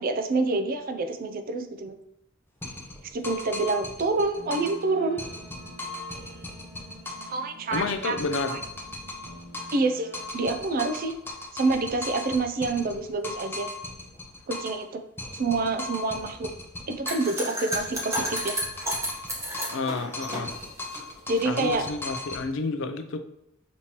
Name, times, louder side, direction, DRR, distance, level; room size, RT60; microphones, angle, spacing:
voice 1, 0.0-1.9 3.0-5.2 7.3-8.2 8.5-8.6 9.7-11.1 11.5-13.7 14.5-15.0 15.3-16.5 16.9-18.6 21.3-21.8, right 3 dB, 45° right, 7 dB, 0.4 m, -27 dB
sound 1, 2.6-4.8 5.2-7.4 7.7-9.9 10.1-14.8 15.2-17.4 17.7-19.9 20.1-22.4, left 2 dB, 10° left, 0.6 m, -38 dB
Guitar, 4.3-10.3, right 1 dB, 85° right, 1.0 m, -48 dB
voice 2, 7.7-8.6 19.7-20.5 21.4-23.2, left 3 dB, 65° left, 8 dB, 0.4 m, -30 dB
sound 2, 17.0-21.5, equal, 15° right, 1.0 m, -32 dB
5.2 x 3.0 x 2.9 m, 0.81 s
head